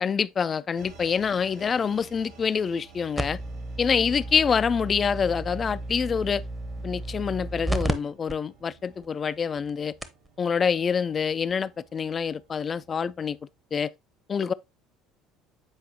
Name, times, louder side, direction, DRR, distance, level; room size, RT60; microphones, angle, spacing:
voice 1, 0.0-3.4 3.8-6.4 6.8-9.9 10.4-13.4 13.7-13.9 14.3-14.5, left 6 dB, 35° left, 0.4 m, -26 dB
sound 1, 0.8-13.8, right 5 dB, 70° right, 1.3 m, -53 dB
sound 2, 3.2-7.9 8.3-8.4 9.0-9.1 9.7-9.8 10.0-10.3 11.5-11.6, right 1 dB, 5° right, 0.8 m, -33 dB
8.0 x 4.8 x 2.8 m
hypercardioid pair, 65°, 0 cm